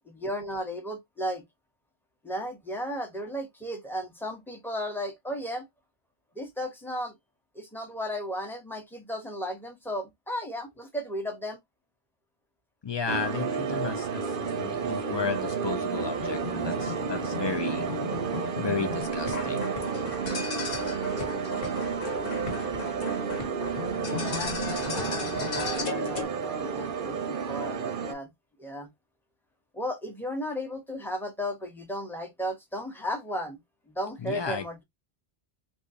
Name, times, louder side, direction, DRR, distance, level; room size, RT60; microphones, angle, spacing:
voice 1, 0.1-1.4 2.2-5.7 6.3-7.1 7.5-11.6 24.2-28.3 28.6-28.9 29.7-33.6 33.9-34.8, equal, ahead, 0.9 m, -35 dB
voice 2, 12.8-17.8 18.6-19.7 34.2-34.6, left 5 dB, 30° left, 0.6 m, -33 dB
sound 1, 13.1-28.1, right 5 dB, 55° right, 0.9 m, -31 dB
sound 2, 16.0-26.2, left 4 dB, 60° left, 1.2 m, -36 dB
3.6 x 3.0 x 2.6 m
omnidirectional pair, 1.1 m